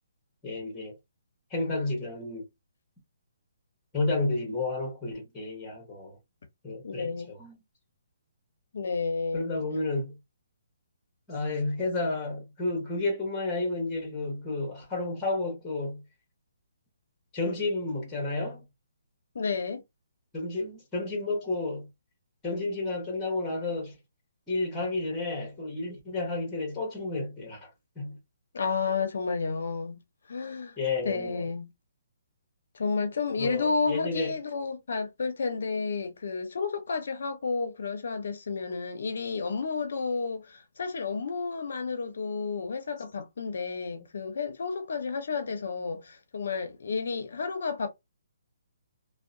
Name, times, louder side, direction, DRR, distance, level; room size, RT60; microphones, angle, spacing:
voice 1, 0.4-1.0 1.5-2.5 3.9-6.2 6.6-7.6 9.3-10.2 11.3-16.0 17.3-18.6 20.3-21.9 22.4-24.0 24.5-27.7 28.0-28.2 30.8-31.5 33.4-34.3, left 2 dB, 10° left, 0.9 m, -31 dB
voice 2, 6.8-7.3 8.7-9.5 19.3-19.8 28.5-30.0 30.3-30.8 31.0-31.7 32.7-47.9, left 4 dB, 60° left, 0.6 m, -31 dB
2.7 x 2.0 x 2.5 m
hypercardioid pair, 175°, 0 cm